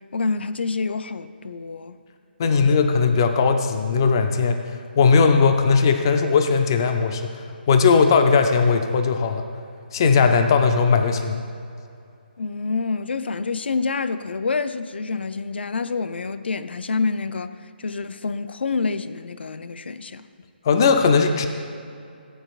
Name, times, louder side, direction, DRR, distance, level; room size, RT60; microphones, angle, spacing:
voice 1, 0.1-2.0 2.4-2.7 12.4-17.5 17.8-20.2, left 4 dB, 75° left, 0.5 m, -27 dB
voice 2, 2.4-4.6 5.0-9.5 9.9-11.4 20.6-21.5, left 5 dB, 25° left, 0.4 m, -18 dB
16.5 x 9.0 x 2.4 m
hypercardioid pair, 175°, 6 cm